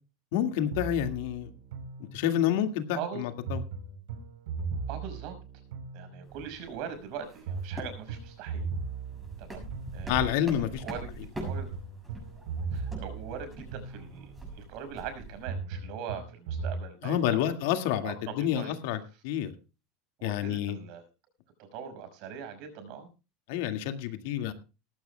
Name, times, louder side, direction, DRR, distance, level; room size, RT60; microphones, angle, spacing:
voice 1, 0.3-1.5 2.1-3.6 10.1-10.8 17.0-19.5 20.2-20.8 23.5-24.5, left 11 dB, 65° left, 1.9 m, -29 dB
sound 1, 0.7-2.6 3.5-6.5 7.5-10.5 11.5-14.5 15.5-16.8, right 5 dB, 75° right, 3.9 m, -38 dB
voice 2, 4.9-5.4 5.9-8.7 9.4-11.7 12.7-17.4 18.0-18.7 20.2-21.0 21.6-23.1, right 7 dB, 50° right, 5.6 m, -41 dB
sound 2, 6.2-15.5, right 2 dB, 10° right, 6.6 m, -43 dB
19.0 x 15.5 x 2.3 m
supercardioid pair, 165°, 0 cm